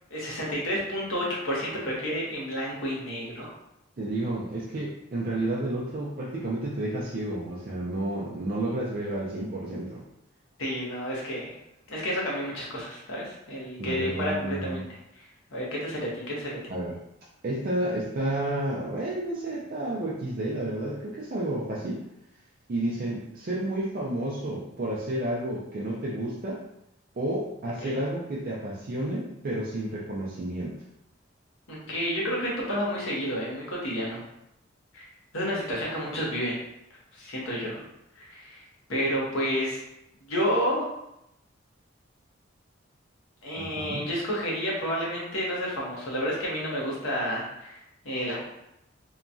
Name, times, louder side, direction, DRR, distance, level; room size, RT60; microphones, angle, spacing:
voice 1, 0.1-3.5 10.6-11.5 11.9-14.8 15.1-15.2 15.5-16.6 27.8-28.0 31.7-34.2 34.9-35.0 35.3-36.6 37.1-37.9 38.2-38.6 38.9-39.8 40.3-40.8 43.4-47.8 48.0-48.5, equal, 85° left, -4 dB, 0.9 m, -30 dB
voice 2, 4.0-10.0 13.8-14.8 16.7-17.0 17.4-22.0 22.7-26.6 27.2-30.8 43.6-44.1, right 1 dB, 45° right, -6 dB, 0.4 m, -31 dB
2.9 x 2.2 x 2.5 m, 0.82 s
head